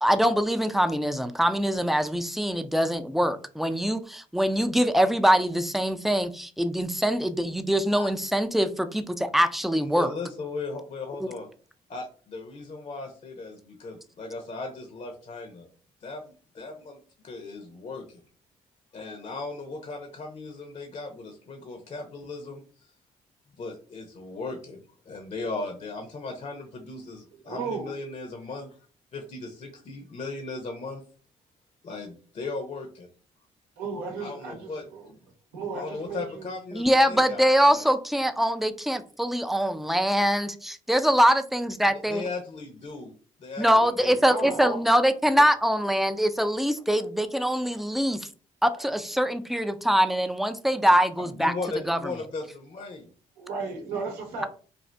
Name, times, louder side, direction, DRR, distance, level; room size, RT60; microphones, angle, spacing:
voice 1, 0.0-10.1 11.2-11.3 36.7-42.2 43.6-48.2 48.6-51.5 51.9-52.0, equal, ahead, 0.4 m, -23 dB
voice 2, 9.7-11.5 11.9-15.7 16.0-17.0 17.2-18.2 18.9-22.9 23.6-28.8 29.1-31.0 31.8-33.1 34.2-34.8 35.7-37.9 41.8-43.1 43.4-44.6 51.2-53.1, left 3 dB, 45° left, 0.7 m, -37 dB
voice 3, 27.3-27.9 33.8-35.1 35.5-36.5 43.7-44.8 53.4-54.4, right 4 dB, 80° right, 0.8 m, -35 dB
2.6 x 2.4 x 3.2 m
hypercardioid pair, 50°, 16 cm